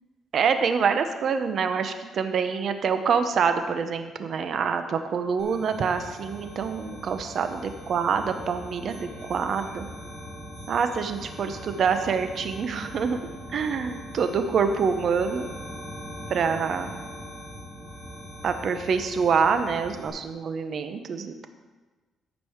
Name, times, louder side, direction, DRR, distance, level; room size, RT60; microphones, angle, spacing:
voice 1, 0.3-9.9 10.7-15.5 16.3-17.0 18.4-21.5, right 6 dB, 60° right, 8 dB, 0.9 m, -26 dB
sound 1, 5.4-20.1, equal, 5° left, 2.8 m, -41 dB
13.0 x 5.4 x 4.6 m, 1.3 s
cardioid pair, 90°, 0 cm